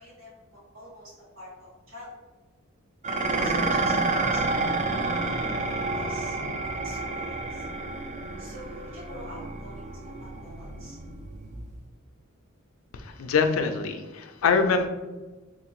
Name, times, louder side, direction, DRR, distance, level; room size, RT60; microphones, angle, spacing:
voice 1, 0.0-2.3 3.3-5.4 5.8-7.7 8.4-11.0, equal, 65° right, -8 dB, 1.5 m, -47 dB
Dishes pots and pans, 3.0-11.9, right 3 dB, 35° right, 0.3 m, -29 dB
voice 2, 12.9-14.9, left 5 dB, 70° left, 6 dB, 0.4 m, -24 dB
3.5 x 2.5 x 3.0 m, 1.2 s
head